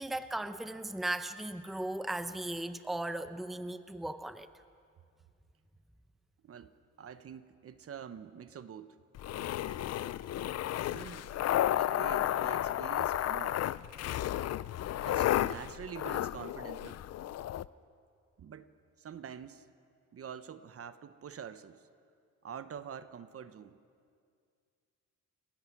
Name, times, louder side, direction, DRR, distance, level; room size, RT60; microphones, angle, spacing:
voice 1, 0.0-4.5, right 1 dB, ahead, 11 dB, 0.8 m, -37 dB
voice 2, 6.4-9.0 10.9-11.3 11.7-13.6 15.0-17.0 18.4-18.7 19.0-19.7 20.1-21.9 22.4-23.8, right 8 dB, 50° right, 12 dB, 1.0 m, -46 dB
sound 1, 9.2-17.7, left 12 dB, 60° left, 0.5 m, -32 dB
30.0 x 16.0 x 6.1 m, 2.2 s
cardioid pair, 90°, 30 cm